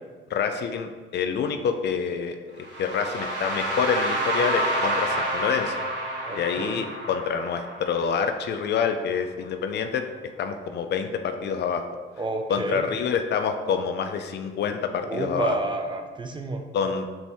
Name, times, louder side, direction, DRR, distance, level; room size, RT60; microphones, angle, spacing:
voice 1, 0.3-5.8 6.3-10.0 10.4-11.8 12.5-15.6 16.7-17.1, left 6 dB, 60° left, 7 dB, 0.4 m, -27 dB
sound 1, 2.6-8.6, right 1 dB, 65° right, 1.5 m, -29 dB
voice 2, 6.3-6.8 12.2-12.8 15.1-16.6, right 2 dB, 25° right, 4 dB, 0.5 m, -30 dB
5.3 x 2.7 x 3.4 m, 1.3 s
cardioid pair, 90°, 20 cm